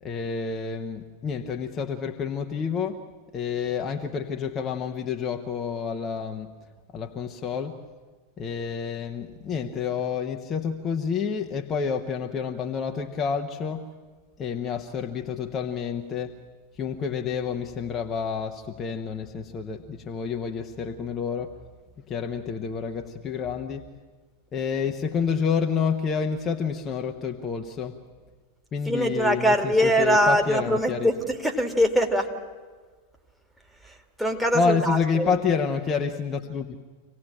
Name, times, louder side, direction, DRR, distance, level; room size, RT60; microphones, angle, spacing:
voice 1, 0.0-3.0 3.3-6.5 6.9-7.8 8.4-13.9 14.4-16.3 16.8-21.5 22.1-23.9 24.5-28.0 28.7-31.1 34.5-36.8, left 6 dB, 25° left, 3 dB, 1.1 m, -29 dB
voice 2, 28.9-32.3 33.8-35.3, equal, 5° right, 6 dB, 2.2 m, -23 dB
26.0 x 17.5 x 8.9 m, 1.4 s
figure-of-eight pair, 90°, 0 cm